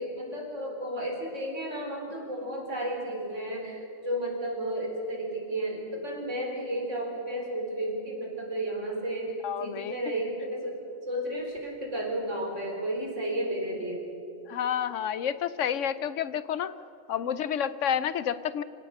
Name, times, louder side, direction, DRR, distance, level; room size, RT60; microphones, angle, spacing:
voice 1, 0.0-9.3 9.6-14.1, right 1 dB, 65° right, 0 dB, 4.4 m, -33 dB
voice 2, 9.4-10.0 14.5-16.7 17.1-18.6, left 9 dB, 70° left, 15 dB, 1.0 m, -29 dB
26.0 x 17.0 x 6.5 m, 2.8 s
omnidirectional pair, 1.4 m